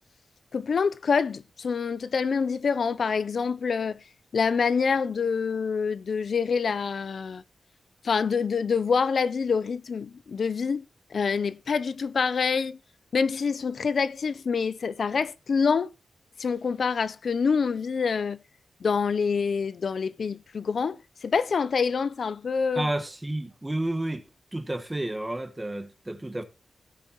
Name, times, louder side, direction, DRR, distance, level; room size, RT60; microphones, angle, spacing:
voice 1, 0.5-4.0 4.3-7.4 8.0-10.8 11.1-12.8 13.1-15.9 16.4-18.4 18.8-22.9, left 5 dB, 60° left, 0.5 m, -26 dB
voice 2, 22.7-24.2 24.5-26.4, right 1 dB, 15° right, 1.4 m, -31 dB
17.0 x 6.9 x 3.0 m
wide cardioid pair, 135°, 0 cm